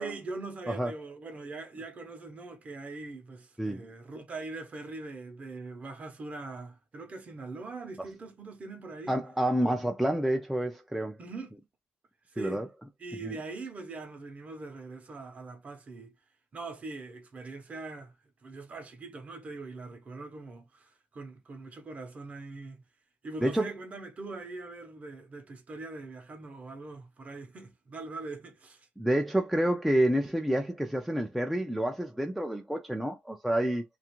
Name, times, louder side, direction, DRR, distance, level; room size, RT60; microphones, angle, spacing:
voice 1, 0.0-9.2 11.2-11.5 12.3-12.6 13.0-16.1 16.5-18.1 18.4-22.8 23.2-28.9, right 3 dB, 30° right, 0.7 m, -42 dB
voice 2, 9.1-11.2 12.4-12.7 13.2-13.4 23.4-23.7 29.0-33.8, right 1 dB, ahead, 0.3 m, -28 dB
2.4 x 2.3 x 2.9 m
cardioid pair, 130°, 5 cm